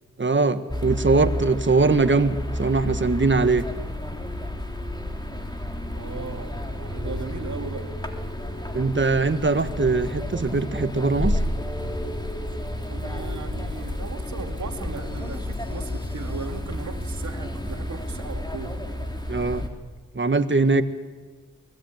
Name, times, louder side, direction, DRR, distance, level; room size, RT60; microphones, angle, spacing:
voice 1, 0.2-3.7 8.7-11.4 19.3-19.7 20.1-20.8, right 3 dB, 35° right, 1.7 m, -21 dB
sound 1, 0.7-19.7, left 1 dB, 15° left, 3.1 m, -31 dB
voice 2, 6.0-7.9 12.9-18.8 20.6-20.8, right 4 dB, 60° right, 2.6 m, -37 dB
24.0 x 19.0 x 9.3 m
cardioid pair, 50°, 32 cm